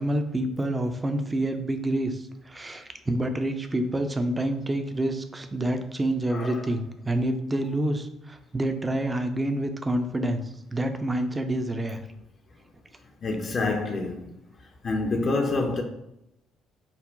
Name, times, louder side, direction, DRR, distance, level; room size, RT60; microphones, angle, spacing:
voice 1, 0.0-12.0, right 1 dB, 20° right, 0.5 m, -28 dB
voice 2, 6.3-6.7 13.2-14.2 14.8-15.8, left 3 dB, 45° left, 0.5 m, -27 dB
5.4 x 2.1 x 2.5 m
hypercardioid pair, 50°, 0 cm